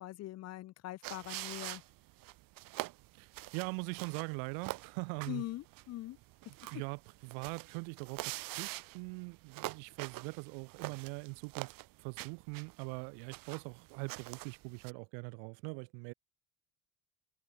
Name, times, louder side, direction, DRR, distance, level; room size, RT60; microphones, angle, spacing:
voice 1, 0.0-1.8 5.3-6.2, left 15 dB, 40° left, 0.5 m, -42 dB
sound 1, 1.0-14.9, right 20 dB, 50° right, 0.7 m, -45 dB
voice 2, 3.2-5.4 6.7-11.7 12.0-16.1, right 40 dB or more, 80° right, 1.6 m, -42 dB
supercardioid pair, 115°, 42 cm